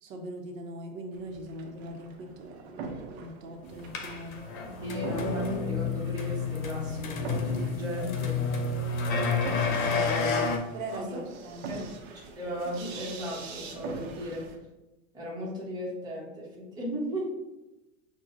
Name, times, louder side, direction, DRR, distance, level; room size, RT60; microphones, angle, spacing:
voice 1, 0.0-4.5 8.5-8.9 9.7-9.8 10.7-12.0, right 1 dB, 75° right, 3 dB, 0.9 m, -41 dB
sound 1, 1.1-14.6, right 4 dB, 55° right, 0.8 m, -44 dB
sound 2, 3.9-10.6, left 4 dB, 80° left, 0.8 m, -29 dB
voice 2, 4.8-8.4 9.6-10.6 10.9-11.0 11.7-11.9 12.4-14.5 15.1-17.3, equal, 10° right, -6 dB, 1.0 m, -36 dB
6.1 x 2.3 x 2.6 m, 1.0 s
supercardioid pair, 150°, 40 cm